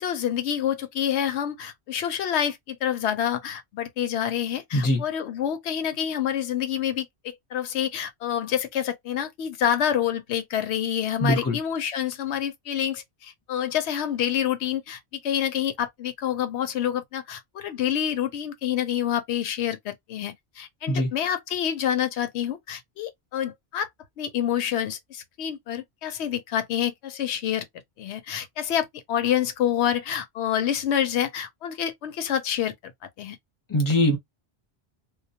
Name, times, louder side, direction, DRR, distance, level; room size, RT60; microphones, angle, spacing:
voice 1, 0.0-23.9 24.2-27.7 28.0-32.9 33.2-33.4, left 10 dB, 90° left, 0.9 m, -27 dB
voice 2, 11.2-11.6 20.9-21.1 33.7-34.2, left 1 dB, 20° left, 0.7 m, -22 dB
2.2 x 2.1 x 2.7 m
omnidirectional pair, 1.1 m